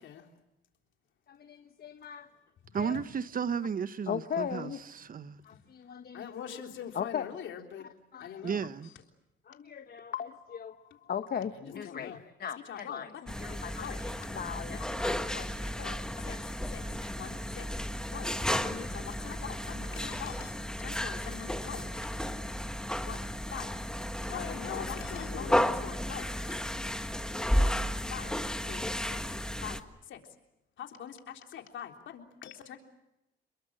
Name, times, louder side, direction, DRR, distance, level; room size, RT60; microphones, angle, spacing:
voice 1, 1.3-2.3 2.8-3.0 4.1-4.8 5.4-6.3 6.9-7.2 8.1-8.4 9.5-13.1 13.4-15.9 16.3-16.4 16.8-16.9, left 8 dB, 50° left, 1.2 m, -39 dB
voice 2, 2.7-5.4 8.4-8.9, right 6 dB, 45° right, 1.1 m, -34 dB
voice 3, 6.1-7.9 8.2-8.9 11.8-12.2 12.7-13.3 13.8-14.0 14.3-14.4 15.3-15.5 15.8-16.8 17.1-17.7 18.1-22.3 23.0-23.7 24.3-26.7 27.6-27.8 28.1-28.3 28.6-29.2 29.6-30.2 30.8-32.8, left 9 dB, 70° left, 3.7 m, -43 dB
sound 1, 13.3-29.8, equal, 5° left, 1.5 m, -33 dB
29.5 x 22.0 x 7.7 m
cardioid pair, 90°, 20 cm